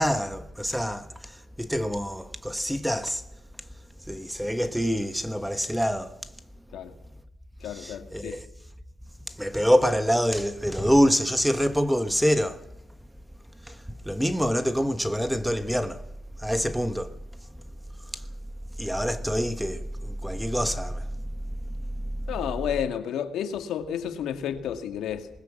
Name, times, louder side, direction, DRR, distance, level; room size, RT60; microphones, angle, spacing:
voice 1, 0.0-3.2 4.1-6.2 7.6-8.5 9.3-12.6 13.7-16.0 16.4-17.1 18.1-18.2 18.8-21.1 22.0-22.1, equal, ahead, 1.3 m, -26 dB
voice 2, 7.6-8.4 22.3-25.3, left 9 dB, 80° left, 2.1 m, -31 dB
20.5 x 20.5 x 7.5 m
cardioid pair, 90°, 0 cm